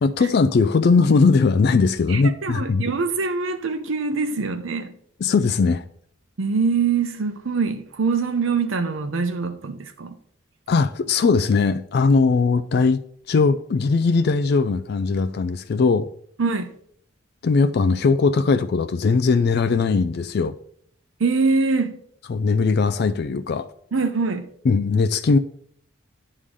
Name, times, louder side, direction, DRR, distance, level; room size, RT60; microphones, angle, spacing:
voice 1, 0.0-2.8 5.2-5.8 10.7-13.0 13.3-16.1 17.4-20.5 22.3-23.7 24.6-25.4, left 4 dB, 55° left, 0.3 m, -19 dB
voice 2, 2.1-4.9 6.4-10.1 16.4-16.7 21.2-22.0 23.9-24.5, right 4 dB, 80° right, 0.7 m, -23 dB
9.8 x 3.7 x 6.3 m
head